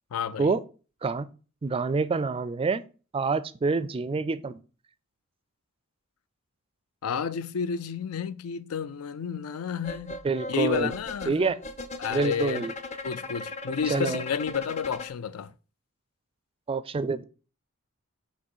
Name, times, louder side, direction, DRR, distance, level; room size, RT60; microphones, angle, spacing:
voice 1, 0.1-0.6 7.0-10.2 10.5-11.3 12.0-12.6 13.0-15.5, left 7 dB, 80° left, 0.4 m, -31 dB
voice 2, 1.6-2.8 3.1-4.6 10.2-10.9 11.3-11.6 12.1-12.7 13.9-14.2 16.7-17.2, right 4 dB, 25° right, 0.4 m, -27 dB
sound 1, 9.8-15.1, left 2 dB, 30° left, 0.5 m, -38 dB
6.2 x 2.9 x 5.5 m
head